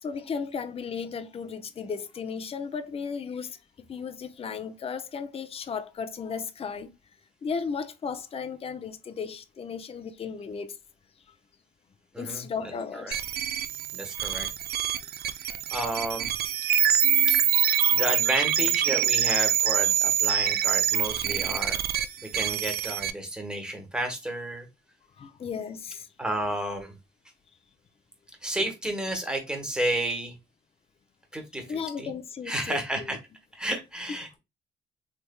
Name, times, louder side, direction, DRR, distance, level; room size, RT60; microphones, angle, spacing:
voice 1, 0.0-3.6 3.9-6.9 7.4-10.8 12.2-13.2 25.2-26.1 31.7-33.2, left 6 dB, 30° left, 0.4 m, -35 dB
voice 2, 12.1-13.1 13.9-14.5 15.4-16.3 17.9-21.8 22.2-24.7 26.2-26.9 28.4-30.4 31.3-32.1 32.4-33.2 33.5-34.4, right 1 dB, 5° right, 1.1 m, -32 dB
sound 1, 13.1-23.1, right 10 dB, 55° right, 0.4 m, -25 dB
3.3 x 3.1 x 2.2 m
cardioid pair, 90°, 20 cm